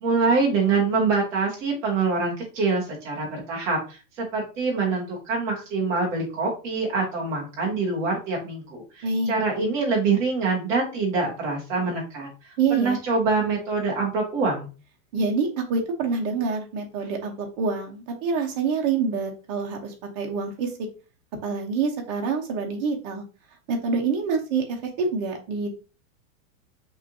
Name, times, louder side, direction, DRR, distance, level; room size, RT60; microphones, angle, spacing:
voice 1, 0.0-12.3 12.7-14.7, right 4 dB, 10° right, -4 dB, 0.3 m, -25 dB
voice 2, 9.0-9.3 12.6-13.0 15.1-20.7 21.4-23.2 23.7-25.7, right 4 dB, 30° right, 2 dB, 0.9 m, -26 dB
5.9 x 2.7 x 2.7 m, 0.34 s
supercardioid pair, 170°, 41 cm